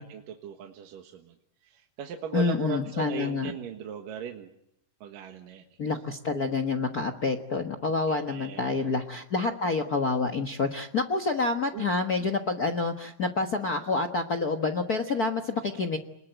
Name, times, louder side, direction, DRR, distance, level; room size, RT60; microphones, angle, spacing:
voice 1, 0.0-1.3 1.6-4.5 5.0-5.6 8.1-8.9 11.7-12.0 15.1-15.2, right 8 dB, 75° right, 4 dB, 3.1 m, -38 dB
voice 2, 2.3-3.5 5.8-16.0, left 3 dB, 65° left, 9 dB, 0.9 m, -28 dB
28.0 x 21.0 x 9.2 m, 0.78 s
omnidirectional pair, 4.0 m